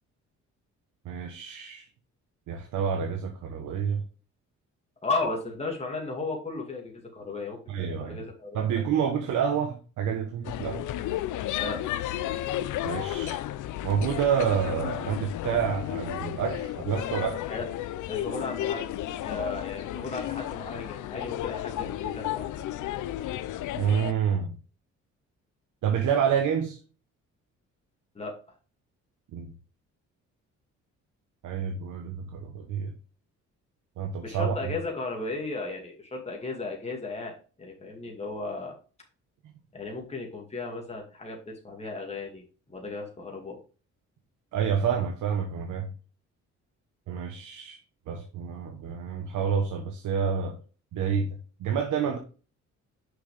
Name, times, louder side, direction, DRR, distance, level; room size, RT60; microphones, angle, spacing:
voice 1, 1.0-1.9 2.5-4.0 7.7-8.2 8.5-10.8 12.8-13.4 13.8-17.4 23.8-24.6 25.8-26.8 29.3-29.5 31.4-32.9 34.0-34.5 44.5-45.9 47.1-47.8 48.1-50.6 50.9-52.2, right 7 dB, 80° right, 1.2 m, -28 dB
voice 2, 5.0-8.7 11.6-12.0 17.5-17.7 18.1-18.9 19.2-22.7 28.1-28.3 34.2-37.3 37.6-38.8 39.7-43.6, left 3 dB, 20° left, 2.3 m, -35 dB
sound 1, 10.4-24.1, left 13 dB, 80° left, 0.6 m, -33 dB
6.1 x 5.9 x 3.4 m
cardioid pair, 90°, 30 cm